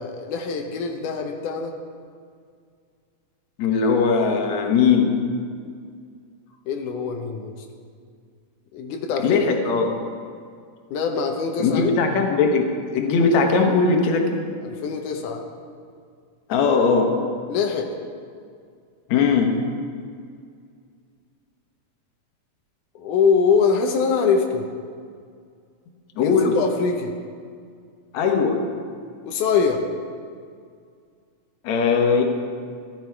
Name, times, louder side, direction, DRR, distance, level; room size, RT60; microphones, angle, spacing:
voice 1, 0.0-1.7 6.7-7.6 8.7-9.4 10.9-11.9 14.6-15.4 17.5-17.9 23.0-24.7 26.2-27.1 29.2-29.8, left 5 dB, 90° left, 3 dB, 2.4 m, -23 dB
voice 2, 3.6-5.1 9.2-9.9 11.6-14.4 16.5-17.1 19.1-19.5 26.2-26.5 28.1-28.6 31.6-32.2, left 5 dB, 70° left, 3 dB, 2.5 m, -19 dB
15.0 x 12.5 x 4.6 m, 2.2 s
omnidirectional pair, 3.4 m